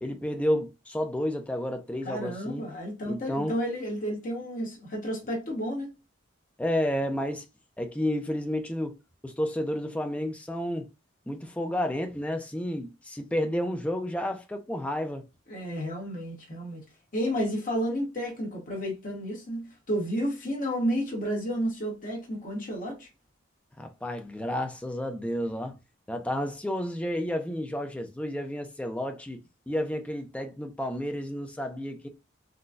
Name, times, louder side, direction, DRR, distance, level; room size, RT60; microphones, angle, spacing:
voice 1, 0.0-2.6 3.1-3.5 6.6-7.5 7.8-9.0 9.2-10.9 11.3-15.2 23.8-25.8 26.1-29.4 29.7-32.1, equal, 5° left, 0.4 m, -31 dB
voice 2, 2.0-5.9 15.5-16.8 17.1-23.1, equal, 45° left, 1.1 m, -31 dB
3.8 x 2.2 x 2.4 m
head